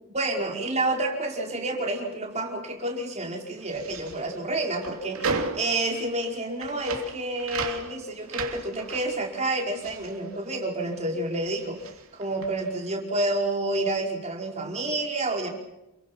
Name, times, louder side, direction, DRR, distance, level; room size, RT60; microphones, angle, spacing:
voice 1, 0.1-15.5, right 2 dB, 30° right, 1 dB, 5.1 m, -29 dB
sound 1, 3.6-11.1 11.3-12.8, right 4 dB, 65° right, 3.2 m, -36 dB
28.5 x 23.5 x 6.1 m, 0.92 s
head